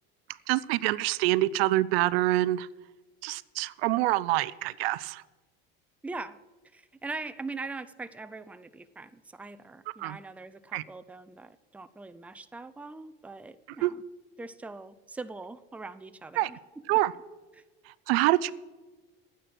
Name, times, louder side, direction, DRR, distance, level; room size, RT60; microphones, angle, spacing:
voice 1, 0.5-2.7 3.2-5.2 10.0-10.2 10.7-10.8 13.8-13.9 16.4-16.5 16.9-17.1 18.1-18.5, right 17 dB, 80° right, 18 dB, 0.5 m, -26 dB
voice 2, 6.0-6.4 6.6-14.0 14.4-17.0 17.5-17.6, right 3 dB, 5° right, 12 dB, 0.5 m, -42 dB
11.5 x 9.3 x 6.0 m, 1.2 s
hypercardioid pair, 90°, 30 cm